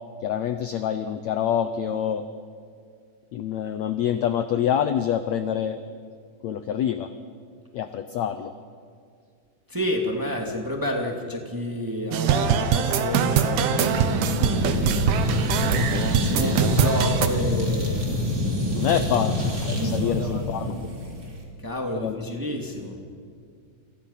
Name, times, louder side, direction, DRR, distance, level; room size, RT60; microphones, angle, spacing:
voice 1, 0.2-2.2 3.3-5.8 6.4-7.1 7.7-8.5 18.7-20.7 21.9-22.2, left 9 dB, 80° left, 10 dB, 1.6 m, -26 dB
voice 2, 9.7-14.0 14.5-14.8 16.1-18.1 18.9-19.0 19.8-20.5 21.6-22.9, left 1 dB, 5° right, 1 dB, 1.7 m, -30 dB
sound 1, 12.1-17.3, right 8 dB, 85° right, 3.1 m, -23 dB
sound 2, 12.3-21.9, left 1 dB, 60° right, 3.1 m, -42 dB
sound 3, 13.4-21.4, left 1 dB, 25° right, 3.7 m, -26 dB
29.0 x 26.5 x 5.7 m, 2.1 s
omnidirectional pair, 4.2 m